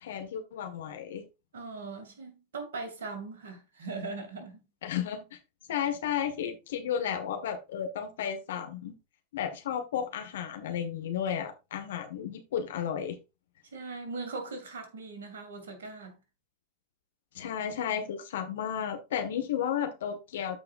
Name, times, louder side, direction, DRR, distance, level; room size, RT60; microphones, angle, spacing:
voice 1, 0.0-1.2 4.8-5.4 5.7-8.9 9.3-13.2 17.3-20.6, left 9 dB, 60° left, 1.5 m, -33 dB
voice 2, 1.5-4.6 13.7-16.2, right 3 dB, 60° right, 2.4 m, -40 dB
14.0 x 4.8 x 2.5 m
figure-of-eight pair, 90°, 0 cm